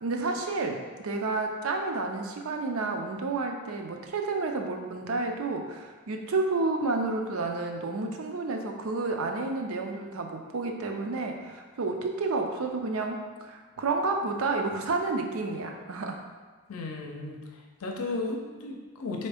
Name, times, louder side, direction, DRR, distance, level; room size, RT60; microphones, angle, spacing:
voice 1, 0.0-16.2, right 3 dB, 70° right, 3 dB, 0.5 m, -30 dB
voice 2, 16.7-17.4 17.8-19.3, left 3 dB, 70° left, 2 dB, 0.6 m, -34 dB
4.3 x 2.7 x 3.4 m, 1.4 s
head